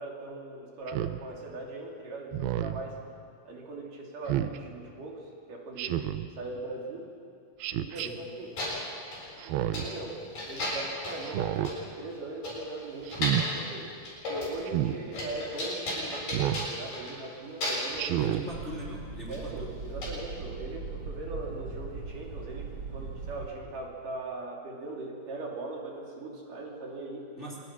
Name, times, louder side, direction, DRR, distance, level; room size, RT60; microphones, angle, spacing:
voice 1, 0.0-3.0 3.5-6.1 6.4-7.1 7.8-8.5 9.5-13.9 14.3-18.3 19.3-27.3, right 2 dB, 60° right, -1 dB, 4.4 m, -40 dB
Speech synthesizer, 0.9-1.2 2.3-2.8 4.3-4.6 5.8-6.3 7.6-8.1 9.4-9.9 11.2-11.7 13.1-13.5 14.7-15.0 16.3-16.7 18.0-18.5, right 12 dB, 85° right, 2.7 m, -30 dB
sound 1, 8.2-8.3 8.6-9.3 9.7-10.0 10.4-11.3 11.7-11.8 12.1-12.2 12.4-13.6 14.0-14.6 14.8-17.3 17.6-18.0 19.3-19.4 20.0-20.1, left 1 dB, 65° left, 9.4 m, -34 dB
voice 2, 18.2-19.7 27.4-27.6, equal, 20° left, -4 dB, 3.3 m, -40 dB
sound 2, 18.5-23.5, right 4 dB, 40° right, 2.7 m, -39 dB
26.5 x 22.5 x 6.2 m, 2.4 s
omnidirectional pair, 4.3 m